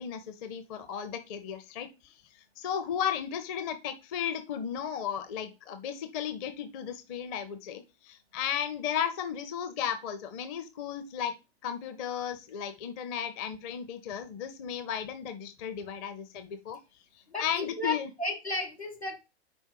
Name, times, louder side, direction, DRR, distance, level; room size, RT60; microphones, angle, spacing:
voice 1, 0.0-2.1 2.6-11.3 11.6-16.8 17.4-18.1, left 8 dB, 35° left, 9 dB, 0.8 m, -35 dB
voice 2, 17.3-19.2, left 2 dB, 85° left, 1 dB, 1.9 m, -34 dB
5.4 x 4.4 x 4.7 m, 0.27 s
figure-of-eight pair, 95°, 32 cm